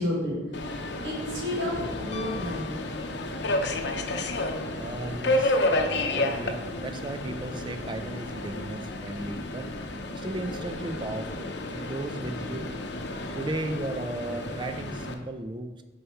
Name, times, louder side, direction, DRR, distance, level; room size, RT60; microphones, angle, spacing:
voice 1, 0.0-2.8, left 1 dB, 70° right, -3 dB, 1.8 m, -32 dB
Subway metro underground, 0.5-15.1, left 2 dB, 65° left, 0.7 m, -31 dB
Piano, 2.1-3.7 6.1-6.2, left 7 dB, 35° left, 0.4 m, -44 dB
voice 2, 4.8-5.6 6.1-9.7 10.1-12.8 13.3-15.8, right 2 dB, 25° right, 8 dB, 0.5 m, -35 dB
6.7 x 5.6 x 4.6 m, 1.2 s
head